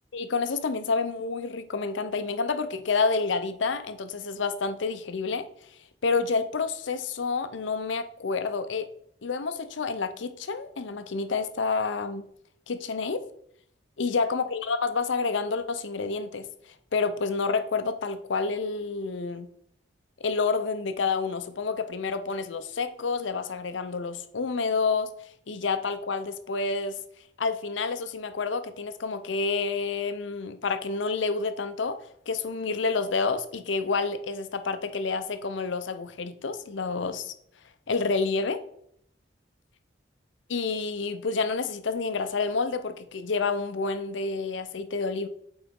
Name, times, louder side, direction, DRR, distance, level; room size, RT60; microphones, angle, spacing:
voice 1, 0.1-5.4 6.0-8.9 9.2-12.2 12.7-13.2 14.0-16.5 16.9-19.5 20.2-25.1 25.5-27.0 27.4-32.0 32.3-37.3 37.9-38.6 40.5-45.3, left 4 dB, 70° left, 10 dB, 0.6 m, -29 dB
8.6 x 4.0 x 3.6 m, 0.69 s
head